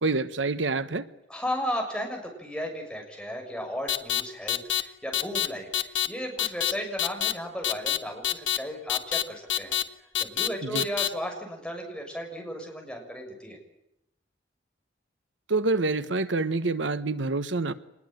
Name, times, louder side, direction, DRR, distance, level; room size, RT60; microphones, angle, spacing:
voice 1, 0.0-1.1 10.6-10.8 15.5-17.7, right 3 dB, 85° right, 13 dB, 1.2 m, -27 dB
voice 2, 1.3-9.8 10.2-13.6, equal, 5° left, 1 dB, 6.9 m, -35 dB
sound 1, 3.9-4.2 4.5-4.8 5.1-5.5 5.7-6.1 6.4-6.7 7.0-7.3 7.6-8.0 8.2-8.6 8.9-9.2 9.5-9.8 10.2-10.5 10.8-11.1, left 11 dB, 80° left, 1.6 m, -25 dB
25.0 x 21.0 x 9.2 m, 0.84 s
head